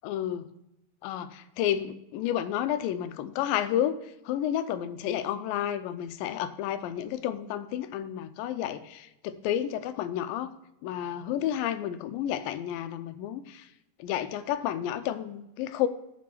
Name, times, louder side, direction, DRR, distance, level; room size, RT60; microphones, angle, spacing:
voice 1, 0.0-0.4 1.0-10.5 10.8-13.7 14.0-15.9, left 11 dB, 85° left, 11 dB, 2.4 m, -31 dB
7.5 x 6.3 x 5.6 m, 0.87 s
omnidirectional pair, 4.0 m